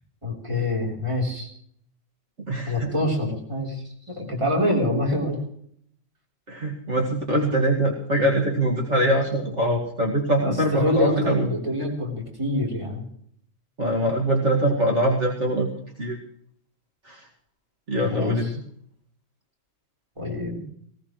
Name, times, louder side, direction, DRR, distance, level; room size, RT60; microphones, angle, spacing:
voice 1, 0.2-1.5 2.7-5.4 10.7-13.0 18.0-18.4 20.2-20.7, left 1 dB, 25° right, -2 dB, 3.7 m, -26 dB
voice 2, 2.4-2.9 6.5-11.5 13.8-15.7 16.0-16.2 17.0-17.3 17.9-18.5, right 1 dB, 65° right, -2 dB, 2.4 m, -23 dB
19.0 x 18.0 x 3.2 m, 0.65 s
omnidirectional pair, 1.3 m